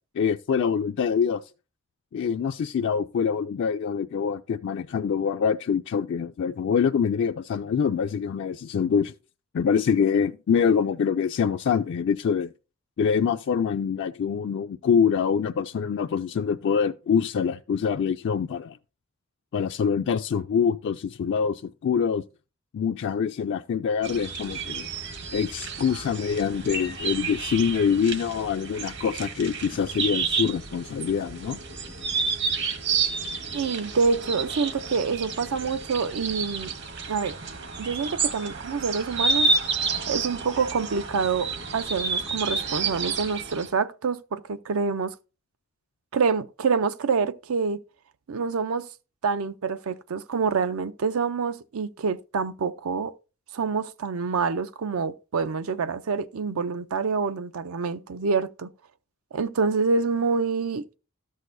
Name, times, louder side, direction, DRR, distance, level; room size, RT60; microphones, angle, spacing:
voice 1, 0.1-1.4 2.1-9.1 9.5-12.5 13.0-18.8 19.5-22.2 22.7-24.9 25.3-31.6, left 6 dB, 60° left, 0.3 m, -25 dB
sound 1, 24.0-43.7, right 4 dB, 55° right, 1.1 m, -30 dB
voice 2, 33.5-36.7 37.1-37.4 37.8-39.5 40.1-45.1 46.1-47.8 48.3-48.9 49.2-53.1 53.5-58.7 59.3-60.8, right 5 dB, 80° right, 0.5 m, -26 dB
13.5 x 6.4 x 2.6 m
head